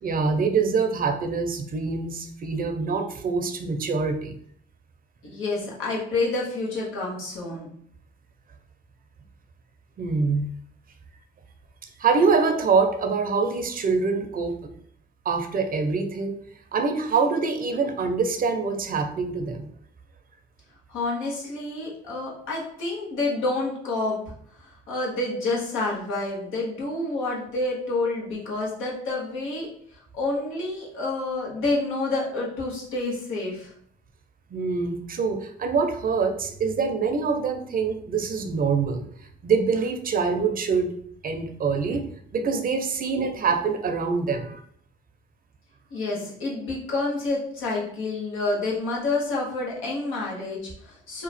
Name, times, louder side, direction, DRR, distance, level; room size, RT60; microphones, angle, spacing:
voice 1, 0.0-4.4 10.0-10.5 12.0-14.5 15.3-16.4 16.7-19.7 34.5-39.0 39.4-40.9 41.2-44.6, right 5 dB, 45° right, 6 dB, 0.6 m, -25 dB
voice 2, 5.2-7.7 20.9-24.2 24.5-33.7 43.2-43.3 45.9-51.2, left 2 dB, 90° left, -4 dB, 1.2 m, -28 dB
2.9 x 2.3 x 4.1 m, 0.64 s
cardioid pair, 90°, 20 cm